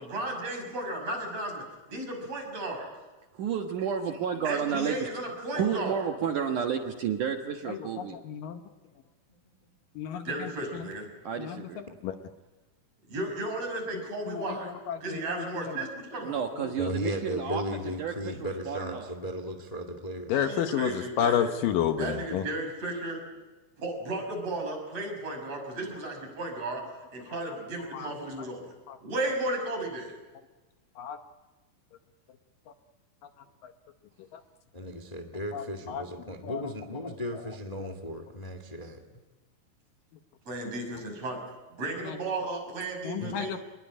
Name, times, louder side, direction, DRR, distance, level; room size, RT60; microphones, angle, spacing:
voice 1, 0.0-1.6 1.9-2.9 4.4-6.0 10.2-11.1 13.1-14.7 15.0-16.4 20.3-21.5 22.0-23.2 23.8-26.9 27.1-28.7 29.0-30.2 40.5-41.4 41.8-43.6, right 2 dB, 40° right, 2 dB, 7.4 m, -34 dB
voice 2, 3.3-5.0 5.4-8.2 11.2-11.8 16.2-19.1, right 7 dB, 60° right, 4 dB, 2.6 m, -31 dB
voice 3, 7.7-8.6 10.0-10.8 11.4-11.6 12.0-12.1 14.3-14.5 14.9-15.6 20.3-22.5 27.9-28.1 28.9-29.0 31.0-31.2 33.6-33.7 35.5-36.0 36.4-36.6 42.1-42.2 43.0-43.6, left 9 dB, 70° left, 7 dB, 2.4 m, -31 dB
voice 4, 16.8-20.4 34.7-39.0 43.2-43.4, equal, 20° left, 6 dB, 1.1 m, -36 dB
26.0 x 21.5 x 9.9 m, 1.2 s
omnidirectional pair, 4.5 m